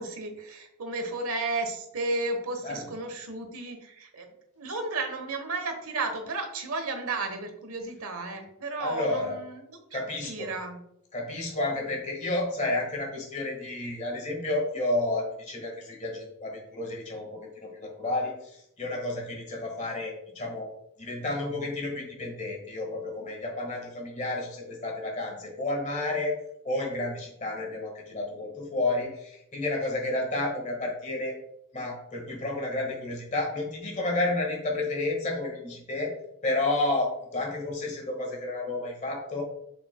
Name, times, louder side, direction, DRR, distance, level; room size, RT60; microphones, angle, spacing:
voice 1, 0.0-4.3 4.6-9.6 9.9-10.8, right 3 dB, 80° right, 6 dB, 1.1 m, -33 dB
voice 2, 8.8-9.4 9.9-10.5 11.1-20.7 21.0-26.4 26.6-31.4 31.7-36.1 36.4-39.4, left 2 dB, 35° left, 1 dB, 1.7 m, -31 dB
7.4 x 6.2 x 2.3 m, 0.78 s
head